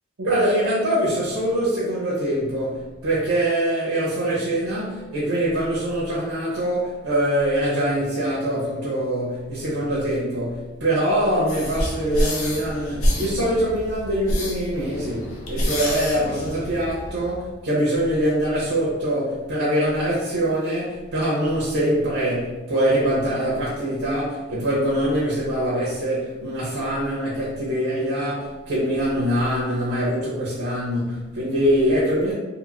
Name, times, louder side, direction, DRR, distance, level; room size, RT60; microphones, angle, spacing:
voice 1, 0.2-32.3, right 1 dB, 90° right, -6 dB, 0.7 m, -23 dB
sound 1, 11.5-17.1, equal, 85° left, 0.7 m, -27 dB
sound 2, 11.9-17.5, equal, 35° left, 1.2 m, -40 dB
3.0 x 2.5 x 2.4 m, 1.2 s
head